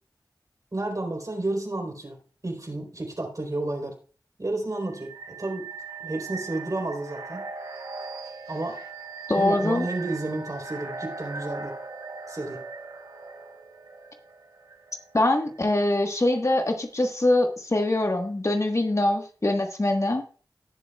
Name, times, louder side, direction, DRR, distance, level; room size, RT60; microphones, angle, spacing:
voice 1, 0.7-2.2 2.4-3.9 4.4-5.7 6.0-7.5 8.5-8.8 9.3-11.7 12.3-12.6, right 2 dB, 50° right, 2 dB, 3.9 m, -31 dB
sound 1, 4.8-15.6, right 4 dB, 85° right, 3.9 m, -39 dB
voice 2, 9.3-9.9 15.1-20.2, left 1 dB, 40° left, 4 dB, 1.4 m, -23 dB
18.0 x 6.9 x 2.4 m, 0.39 s
cardioid pair, 40°, 8 cm